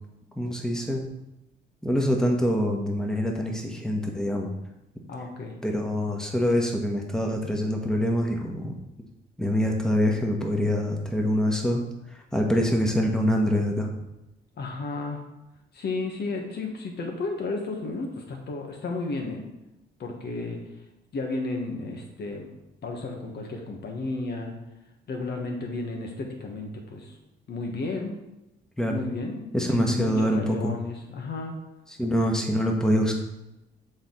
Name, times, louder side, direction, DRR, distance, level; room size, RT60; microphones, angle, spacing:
voice 1, 0.4-1.1 1.8-4.5 5.6-8.8 9.4-11.9 12.3-13.9 28.8-29.0 29.5-30.8 32.0-33.1, equal, 5° left, 1 dB, 1.3 m, -25 dB
voice 2, 5.1-5.5 14.6-15.2 15.7-19.5 20.0-20.6 21.1-22.5 22.8-24.5 25.1-27.1 27.5-28.2 28.9-31.5, left 3 dB, 55° left, 2 dB, 1.5 m, -33 dB
6.8 x 4.5 x 4.0 m, 0.96 s
cardioid pair, 90°, 20 cm